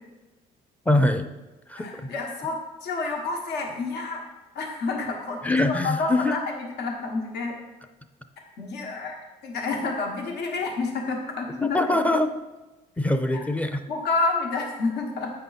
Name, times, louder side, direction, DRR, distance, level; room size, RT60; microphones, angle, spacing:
voice 1, 0.9-1.3 1.7-2.1 5.4-6.3 11.6-12.3 13.0-13.8, left 2 dB, 10° left, 8 dB, 0.5 m, -23 dB
voice 2, 1.8-4.2 4.5-5.4 5.7-7.5 8.6-12.0 13.3-13.4 13.9-15.3, left 3 dB, 75° left, 2 dB, 1.2 m, -29 dB
8.0 x 5.5 x 4.0 m, 1.1 s
cardioid pair, 110°, 17 cm